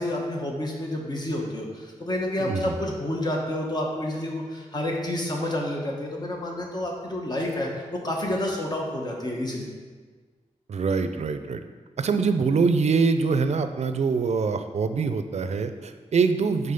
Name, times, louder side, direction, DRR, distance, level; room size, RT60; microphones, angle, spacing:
voice 1, 0.0-9.7, left 1 dB, 35° left, -1 dB, 1.1 m, -29 dB
voice 2, 2.4-2.7 10.7-11.6 12.0-16.7, right 5 dB, 65° right, 9 dB, 0.4 m, -24 dB
5.4 x 4.0 x 5.2 m, 1.5 s
wide cardioid pair, 130°, 12 cm